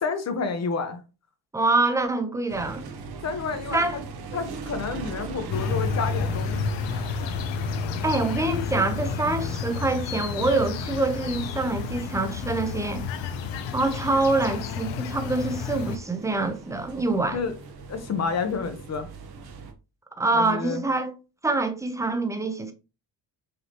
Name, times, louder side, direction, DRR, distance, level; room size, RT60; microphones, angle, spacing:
voice 1, 0.0-1.0 3.2-4.0 4.3-6.6 17.3-17.5 17.9-19.1 20.3-20.8, left 5 dB, 35° left, 0.8 m, -29 dB
voice 2, 1.5-2.8 3.7-4.0 8.0-13.0 13.7-17.4 20.2-21.1 21.4-22.7, right 2 dB, 5° right, 0.5 m, -25 dB
sound 1, 2.5-19.7, right 4 dB, 55° right, 0.9 m, -41 dB
sound 2, 5.5-16.0, left 5 dB, 75° left, 0.7 m, -30 dB
5.1 x 2.7 x 2.8 m
cardioid pair, 125°, 44 cm